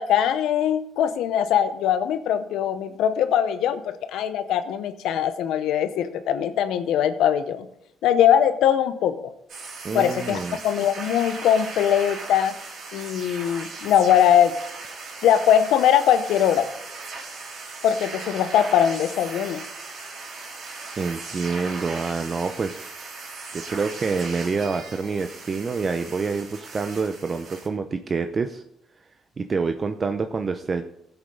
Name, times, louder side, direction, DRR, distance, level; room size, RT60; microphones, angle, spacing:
voice 1, 0.0-7.7 8.0-9.3 9.9-12.5 12.9-14.6 15.2-16.7 17.8-19.6, left 9 dB, 85° left, 11 dB, 0.8 m, -21 dB
sound 1, 9.5-27.7, right 3 dB, 65° right, 3.2 m, -38 dB
voice 2, 9.8-10.6 21.0-22.9 23.5-28.6 29.4-30.8, right 4 dB, 40° right, 8 dB, 0.6 m, -27 dB
16.0 x 8.1 x 3.8 m, 0.79 s
cardioid pair, 90°, 0 cm